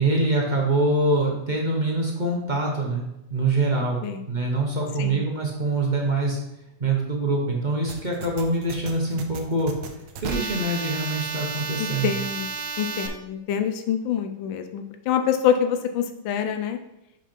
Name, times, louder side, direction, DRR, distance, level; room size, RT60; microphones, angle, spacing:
voice 1, 0.0-4.0 4.3-6.4 6.8-9.7 10.2-12.1, right 2 dB, 35° right, -1 dB, 0.8 m, -24 dB
sound 1, 7.9-13.1, right 5 dB, 75° right, 1.4 m, -33 dB
voice 2, 11.8-12.5 12.8-16.8, left 8 dB, 80° left, 7 dB, 1.4 m, -26 dB
5.8 x 5.6 x 4.4 m, 0.88 s
omnidirectional pair, 2.1 m